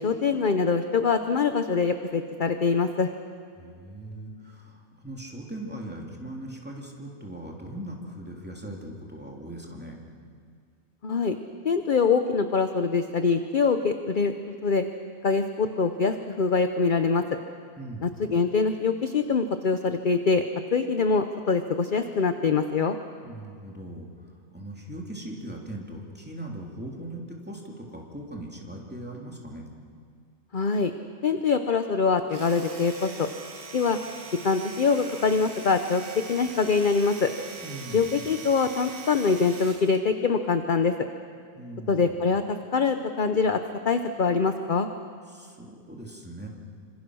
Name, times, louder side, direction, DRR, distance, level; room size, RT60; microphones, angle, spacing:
voice 1, 0.0-3.1 11.0-11.3 11.6-14.8 15.2-17.2 18.0-20.4 20.7-23.0 30.5-30.9 31.2-33.3 33.7-34.0 34.4-37.3 37.9-40.9 41.9-44.9, left 5 dB, 40° left, 8 dB, 0.9 m, -24 dB
voice 2, 3.6-10.0 17.8-18.1 23.2-29.6 37.6-38.1 41.5-42.2 45.3-46.5, right 1 dB, 5° right, -1 dB, 2.9 m, -40 dB
Domestic sounds home sounds, 32.2-40.0, right 4 dB, 90° right, 2.2 m, -42 dB
26.5 x 25.5 x 6.3 m, 2.2 s
omnidirectional pair, 1.5 m